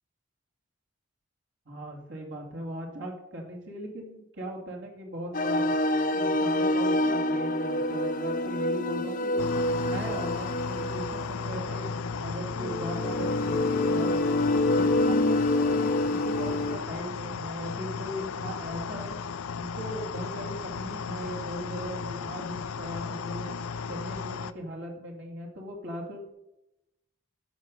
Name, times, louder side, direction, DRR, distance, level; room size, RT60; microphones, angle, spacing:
voice 1, 1.7-5.7 6.1-9.6 9.9-14.4 14.7-19.1 19.5-23.5 23.9-26.3, equal, 60° right, -1 dB, 2.4 m, -38 dB
sound 1, 5.3-16.8, left 1 dB, 40° left, 0.6 m, -27 dB
sound 2, 9.4-24.5, left 5 dB, 85° left, 0.5 m, -35 dB
16.0 x 5.3 x 6.3 m, 0.89 s
head